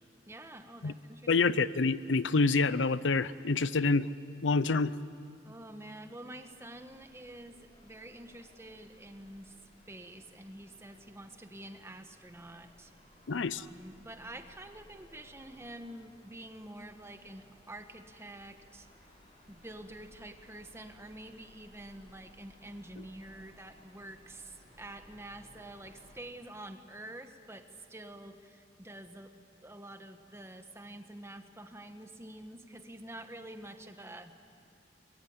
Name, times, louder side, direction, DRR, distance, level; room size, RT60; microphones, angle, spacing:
voice 1, 0.3-1.3 5.4-9.6 9.9-12.9 13.6-18.9 19.5-29.3 29.6-34.3, right 1 dB, 15° right, 7 dB, 1.3 m, -48 dB
voice 2, 1.3-4.1 4.4-5.0 13.3-13.7, left 3 dB, 90° left, 16 dB, 0.6 m, -27 dB
sound 1, 6.4-26.2, equal, 30° left, 6.3 m, -60 dB
23.5 x 22.0 x 9.6 m, 2.4 s
head